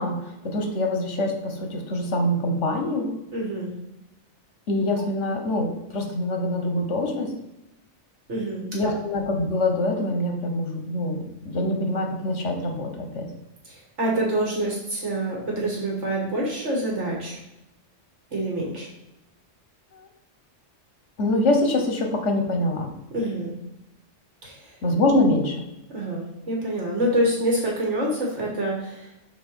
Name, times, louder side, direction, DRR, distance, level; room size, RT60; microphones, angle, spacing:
voice 1, 0.0-3.1 4.7-7.3 8.7-13.3 19.9-20.1 21.2-22.9 24.8-25.6, left 1 dB, 75° left, 3 dB, 1.5 m, -24 dB
voice 2, 3.3-3.7 8.3-8.9 13.7-17.4 18.3-18.9 23.1-23.6 24.4-24.8 25.9-29.1, right 1 dB, 70° right, -2 dB, 1.9 m, -26 dB
6.1 x 4.5 x 4.5 m, 0.91 s
omnidirectional pair, 1.2 m